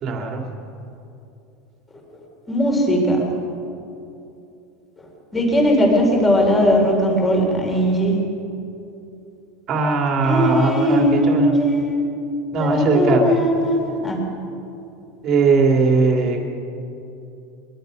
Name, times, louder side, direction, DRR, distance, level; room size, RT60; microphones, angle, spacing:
voice 1, 0.0-0.4 9.7-11.5 12.5-13.3 15.2-16.4, right 4 dB, 30° right, 2 dB, 2.8 m, -19 dB
voice 2, 2.5-3.3 5.3-8.2 10.2-12.1 12.6-14.2, equal, 10° left, 0 dB, 3.7 m, -18 dB
23.5 x 22.0 x 5.3 m, 2.7 s
supercardioid pair, 175°, 0 cm